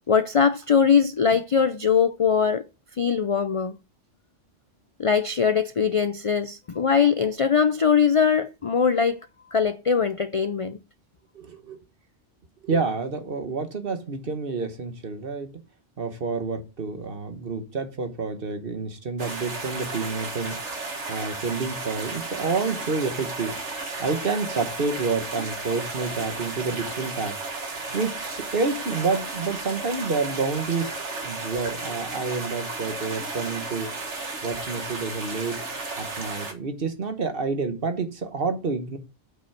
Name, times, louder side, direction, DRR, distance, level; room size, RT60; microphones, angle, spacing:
voice 1, 0.1-2.7 2.9-3.8 5.0-9.2 9.5-10.8, left 6 dB, 55° left, 0.3 m, -21 dB
voice 2, 11.3-11.8 12.6-15.5 16.0-20.6 21.1-23.6 24.0-27.4 27.9-33.9 34.4-35.6 36.0-39.0, right 4 dB, 50° right, 1.4 m, -29 dB
sound 1, 19.2-36.5, right 3 dB, 75° right, 1.9 m, -34 dB
8.1 x 5.5 x 5.9 m
omnidirectional pair, 1.2 m